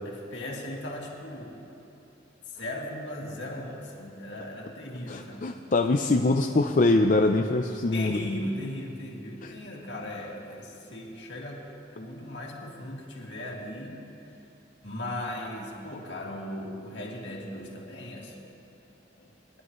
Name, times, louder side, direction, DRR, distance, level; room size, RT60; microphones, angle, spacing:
voice 1, 0.0-1.7 2.5-5.5 7.9-14.0 14.8-18.4 19.2-19.3, left 1 dB, 70° left, -2 dB, 2.3 m, -37 dB
voice 2, 5.1-8.2 9.4-9.5, left 2 dB, 45° left, 4 dB, 0.5 m, -23 dB
28.0 x 11.0 x 3.1 m, 2.9 s
head